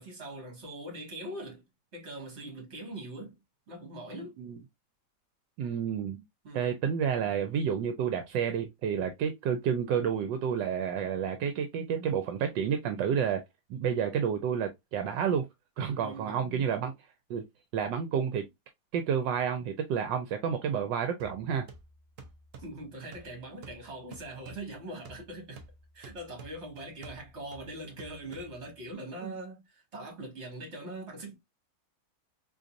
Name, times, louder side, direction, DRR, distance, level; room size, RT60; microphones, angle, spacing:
voice 1, 0.0-1.6 1.9-3.4 3.7-4.4 6.4-6.7 16.0-16.4 22.6-25.6 25.9-31.3, right 1 dB, 40° right, 1.8 m, -42 dB
voice 2, 5.6-6.2 6.5-13.4 13.7-15.4 15.8-16.9 17.3-17.4 17.7-18.5 18.9-21.6 29.2-29.3, right 7 dB, 80° right, 1.2 m, -30 dB
sound 1, 21.2-28.9, right 3 dB, 60° right, 0.9 m, -52 dB
3.9 x 3.1 x 2.5 m
omnidirectional pair, 2.0 m